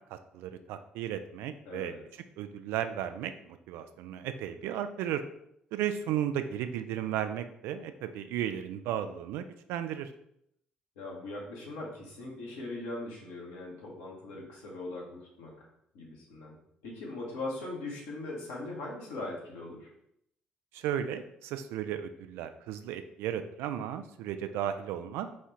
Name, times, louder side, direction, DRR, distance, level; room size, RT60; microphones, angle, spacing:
voice 1, 0.1-1.9 2.4-5.2 5.7-9.4 9.7-10.1 20.7-25.3, right 10 dB, 75° right, 9 dB, 0.3 m, -34 dB
voice 2, 1.6-2.0 11.0-15.7 15.9-16.5 16.8-19.9, left 2 dB, 80° left, -2 dB, 1.1 m, -40 dB
4.2 x 2.4 x 4.4 m, 0.75 s
hypercardioid pair, 50°, 4 cm